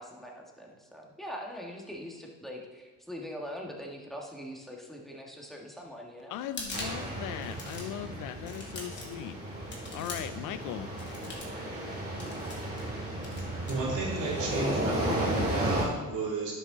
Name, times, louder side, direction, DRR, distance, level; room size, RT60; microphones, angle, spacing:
voice 1, 0.0-6.4, equal, ahead, -1 dB, 1.6 m, -42 dB
voice 2, 6.3-9.4 9.9-10.9, left 11 dB, 90° left, 11 dB, 0.6 m, -38 dB
sound 1, 6.4-7.1 7.4-8.0 8.5-9.2 9.7-10.4 11.0-11.6 12.2-12.9 13.2-13.7, left 2 dB, 35° left, 2.5 m, -42 dB
sound 2, 6.7-15.8, right 1 dB, 30° right, 3.0 m, -34 dB
voice 3, 13.7-16.5, right 3 dB, 85° right, -4 dB, 2.7 m, -33 dB
9.9 x 6.3 x 3.9 m, 1.3 s
cardioid pair, 90°, 30 cm